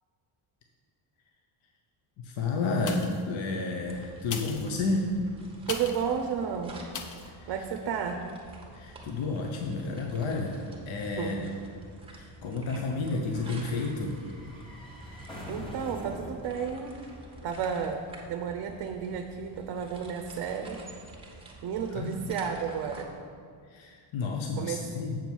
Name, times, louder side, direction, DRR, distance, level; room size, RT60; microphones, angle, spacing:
voice 1, 2.2-5.1 7.2-7.5 8.7-11.5 12.1-14.1 21.9-22.3 23.7-25.2, left 3 dB, 65° left, 1 dB, 0.9 m, -31 dB
sound 1, 2.8-3.3 4.2-6.1 6.9-7.3 7.8-7.9, left 5 dB, 40° left, 0.6 m, -39 dB
sound 2, 3.8-23.0, right 2 dB, 10° right, 1.0 m, -49 dB
voice 2, 5.7-6.7 7.5-8.2 11.2-11.3 15.5-16.9 17.4-18.0 18.3-20.8 21.6-23.1 24.6-24.8, right 7 dB, 55° right, 5 dB, 0.6 m, -32 dB
sound 3, 8.5-18.1 18.3-18.4, left 1 dB, 10° left, 1.1 m, -48 dB
7.5 x 4.5 x 7.0 m, 2.2 s
cardioid pair, 155°, 50 cm